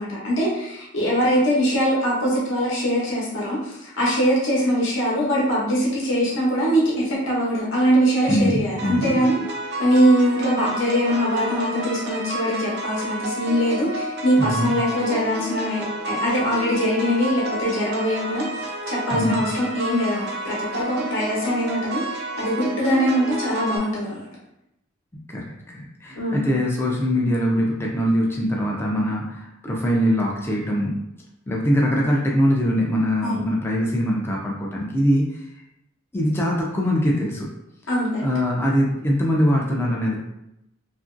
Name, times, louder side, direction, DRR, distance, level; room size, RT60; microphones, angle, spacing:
voice 1, 0.0-9.3 9.8-24.3 26.1-26.5 33.2-33.4 37.9-38.2, equal, 65° left, -4 dB, 0.8 m, -22 dB
voice 2, 8.2-9.2 14.4-14.7 19.1-19.4 25.3-25.5 26.0-31.0 31.5-35.5 36.1-37.5 38.2-40.2, equal, 10° left, -3 dB, 0.4 m, -22 dB
sound 1, 8.8-23.8, right 1 dB, 55° right, 0.4 m, -31 dB
2.8 x 2.5 x 2.5 m, 0.84 s
head